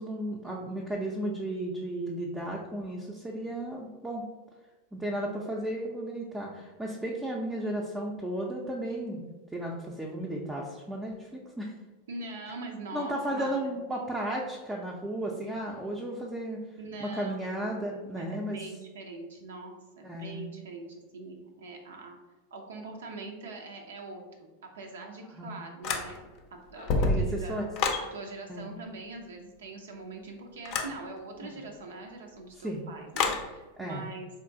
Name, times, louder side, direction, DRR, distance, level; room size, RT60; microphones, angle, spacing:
voice 1, 0.0-4.2 4.9-9.2 9.5-11.7 12.9-16.6 17.0-18.6 20.0-20.4 25.4-25.5 27.1-27.7 28.5-28.7 31.4-31.5 32.6-32.8 33.8-34.0, right 1 dB, 10° right, -3 dB, 0.4 m, -34 dB
voice 2, 12.1-13.5 16.8-17.6 18.1-22.2 22.5-24.5 24.7-27.6 28.0-34.3, right 3 dB, 75° right, 2 dB, 0.4 m, -43 dB
sound 1, 25.8-26.4 26.8-28.1 30.7-31.0 33.1-33.5, left 3 dB, 50° left, 0.5 m, -28 dB
3.6 x 2.3 x 2.6 m, 1.2 s
hypercardioid pair, 90°, 0 cm